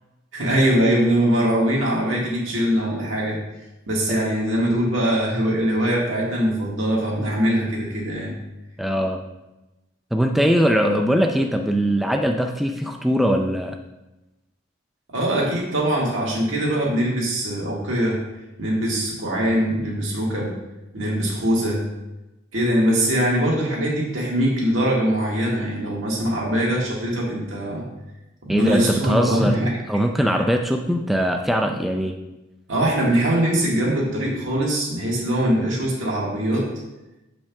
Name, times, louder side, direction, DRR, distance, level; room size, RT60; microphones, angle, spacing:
voice 1, 0.3-3.4 3.9-8.3 15.1-18.2 18.6-20.5 20.9-21.8 22.5-27.8 28.4-29.8 30.3-30.4 32.7-36.7, right 1 dB, 80° right, -4 dB, 2.1 m, -22 dB
voice 2, 8.8-9.2 10.1-13.8 28.5-29.5 29.9-32.1, equal, ahead, 3 dB, 0.4 m, -21 dB
6.9 x 5.2 x 3.6 m, 0.98 s
head